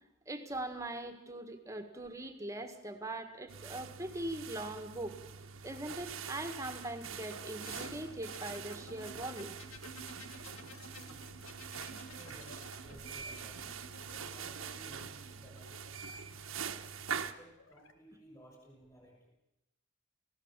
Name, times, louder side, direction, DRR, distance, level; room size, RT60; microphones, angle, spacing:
voice 1, 0.3-5.2 5.6-9.5, right 1 dB, 15° right, 6 dB, 1.7 m, -41 dB
sound 1, 3.5-17.3, right 6 dB, 80° right, 1.3 m, -44 dB
sound 2, 7.6-16.2 17.3-17.9, left 1 dB, 80° left, 2.3 m, -53 dB
voice 2, 10.8-11.3 11.9-13.7 14.2-15.7 16.9-19.3, right 1 dB, 15° left, 1 dB, 6.2 m, -58 dB
29.5 x 17.0 x 7.5 m, 0.93 s
head